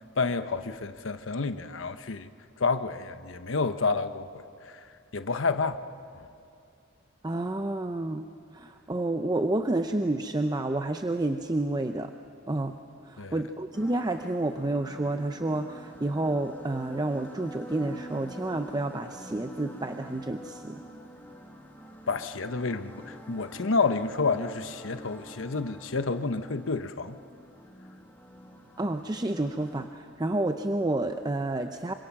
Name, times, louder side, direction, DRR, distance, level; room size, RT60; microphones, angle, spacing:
voice 1, 0.2-2.3 2.6-4.3 5.1-5.8 6.2-6.3 13.2-13.4 22.1-27.2, left 4 dB, 80° left, 10 dB, 1.0 m, -29 dB
voice 2, 7.2-8.3 8.6-12.1 12.5-12.8 13.3-20.8 28.8-29.9 30.2-31.9, right 2 dB, 20° right, 7 dB, 0.6 m, -29 dB
sound 1, 13.7-29.9, equal, 10° left, 2.3 m, -46 dB
26.5 x 25.0 x 6.1 m, 2.6 s
head